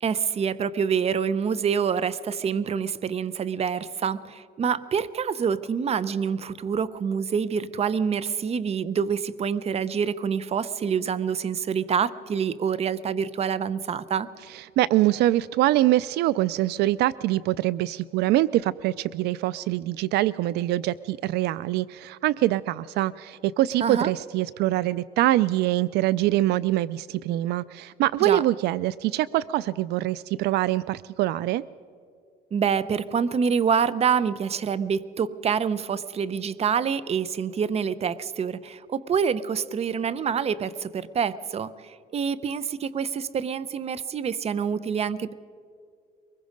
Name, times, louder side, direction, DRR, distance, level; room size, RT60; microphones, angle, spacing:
voice 1, 0.0-14.3 23.8-24.1 28.2-28.4 32.5-45.3, right 7 dB, 35° right, 17 dB, 0.7 m, -26 dB
voice 2, 14.5-31.6, right 15 dB, 80° right, 19 dB, 0.4 m, -24 dB
23.5 x 21.0 x 5.2 m, 2.3 s
cardioid pair, 110°, 17 cm